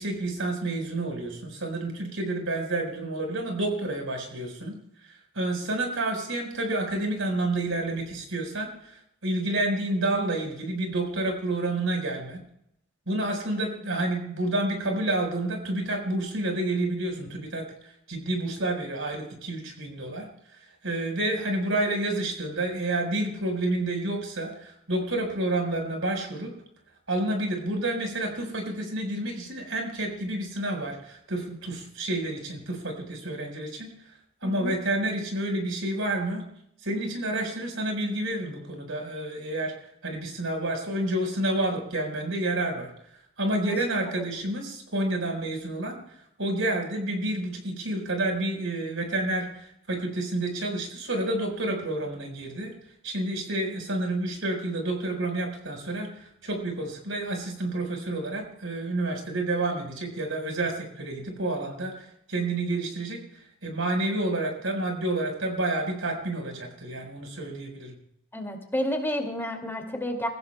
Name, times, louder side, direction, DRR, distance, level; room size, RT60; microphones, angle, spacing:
voice 1, 0.0-4.7 5.3-12.4 13.1-17.7 18.1-20.3 20.8-26.5 27.1-33.9 34.4-36.4 36.8-39.7 40.0-42.9 43.4-46.0 46.4-52.7 53.0-63.2 63.6-68.0, right 1 dB, 75° right, 3 dB, 4.5 m, -29 dB
voice 2, 34.4-34.7 43.6-43.8 68.3-70.3, left 1 dB, 10° left, 2 dB, 2.2 m, -30 dB
29.0 x 15.5 x 2.2 m, 0.75 s
head